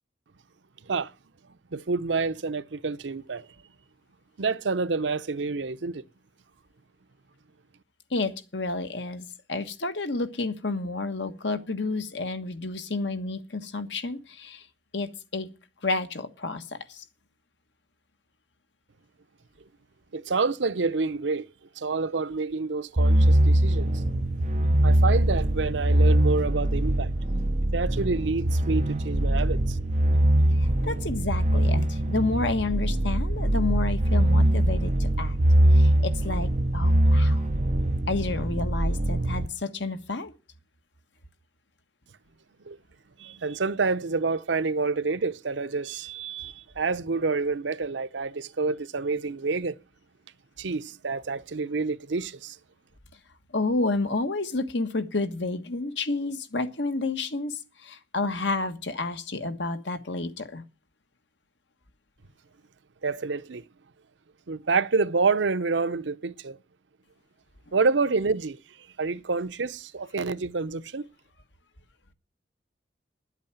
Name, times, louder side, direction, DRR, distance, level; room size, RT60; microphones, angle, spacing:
voice 1, 1.7-3.5 4.4-6.0 20.1-21.5 21.8-24.0 24.8-27.1 27.7-29.8 42.7-42.8 43.2-49.8 50.6-52.6 63.0-63.6 64.5-66.6 67.7-68.6 69.0-71.1, right 4 dB, 85° right, 0.7 m, -28 dB
voice 2, 8.1-14.6 14.9-15.5 15.8-16.6 16.9-17.0 30.6-35.4 35.7-37.4 38.1-40.3 53.5-60.6, left 3 dB, 75° left, 1.5 m, -30 dB
sound 1, 23.0-39.5, right 1 dB, 40° right, 0.8 m, -22 dB
10.5 x 8.3 x 8.8 m
head